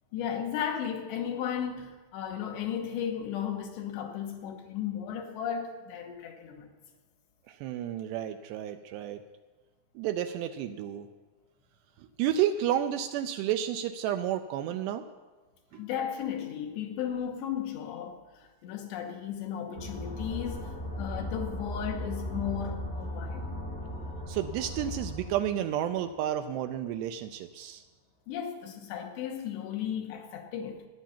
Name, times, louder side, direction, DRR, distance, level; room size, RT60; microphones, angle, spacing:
voice 1, 0.1-6.7 15.7-23.6 28.3-30.9, left 9 dB, 75° left, 3.3 m, -35 dB
voice 2, 7.5-9.2 10.0-11.1 12.0-15.1 15.7-15.8 24.3-27.8, right 10 dB, 80° right, 2.5 m, -31 dB
sound 1, 19.7-26.3, left 1 dB, 35° left, 0.9 m, -37 dB
14.5 x 10.5 x 7.3 m
omnidirectional pair, 5.3 m